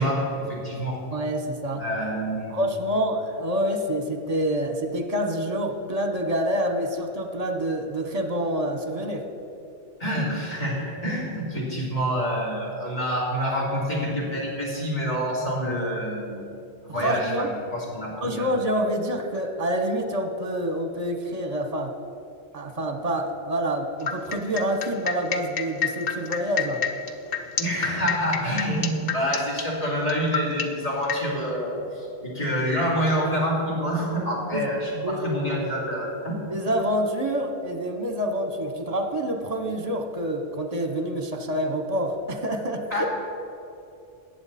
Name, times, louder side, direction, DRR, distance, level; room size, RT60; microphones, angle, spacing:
voice 1, 0.0-1.0 1.8-2.5 10.0-16.4 16.8-18.5 27.6-34.9 35.2-36.7 42.9-43.1, equal, 35° left, -5 dB, 3.3 m, -27 dB
voice 2, 1.1-1.8 2.5-9.3 16.9-17.5 18.2-21.9 22.5-26.8 34.5-34.7 34.9-35.2 36.5-43.1, equal, 40° right, 5 dB, 1.1 m, -27 dB
sound 1, 24.1-31.2, left 7 dB, 60° left, 0.9 m, -27 dB
14.5 x 9.2 x 4.2 m, 2.7 s
omnidirectional pair, 1.1 m